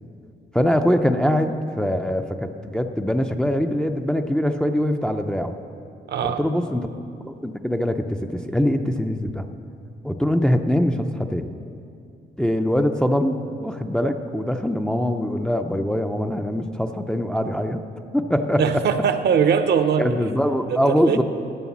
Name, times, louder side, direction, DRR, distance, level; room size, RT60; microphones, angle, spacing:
voice 1, 0.5-5.6 6.2-6.9 7.2-9.5 10.0-11.5 12.4-17.8 18.1-18.6 20.0-21.2, equal, 5° left, 5 dB, 0.5 m, -23 dB
voice 2, 6.1-6.4 18.6-20.1 20.7-21.2, right 7 dB, 65° right, 9 dB, 0.8 m, -21 dB
11.0 x 8.9 x 7.2 m, 2.5 s
cardioid pair, 115°, 19 cm